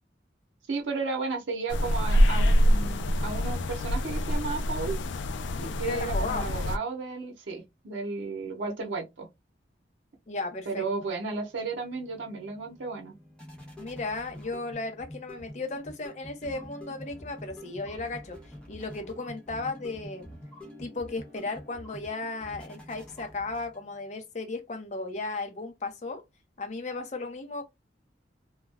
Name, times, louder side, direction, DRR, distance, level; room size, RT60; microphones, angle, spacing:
voice 1, 0.7-5.0 5.6-9.3 10.7-13.1, right 4 dB, 85° right, 0.7 m, -34 dB
sound 1, 1.7-6.8, equal, 90° left, 0.4 m, -25 dB
voice 2, 5.8-6.5 10.3-10.8 13.8-18.4 18.7-20.3 20.8-26.2 26.6-27.6, left 3 dB, 40° left, 0.6 m, -35 dB
sound 2, 11.5-24.1, left 1 dB, 5° left, 0.7 m, -47 dB
2.3 x 2.0 x 3.3 m
head